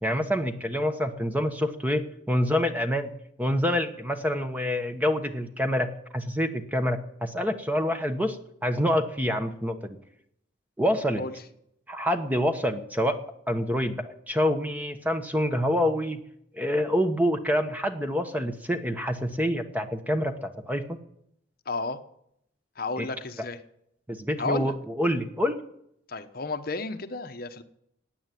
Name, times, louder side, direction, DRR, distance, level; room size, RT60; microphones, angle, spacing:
voice 1, 0.0-3.1 3.4-10.0 10.8-11.2 11.9-13.2 13.5-16.2 16.5-20.8 23.0-23.1 24.1-25.6, equal, 10° right, 7 dB, 1.2 m, -27 dB
voice 2, 21.7-22.0 22.8-23.6 24.4-24.7 26.1-27.6, left 3 dB, 50° left, 8 dB, 1.1 m, -32 dB
16.5 x 9.3 x 9.2 m, 0.74 s
head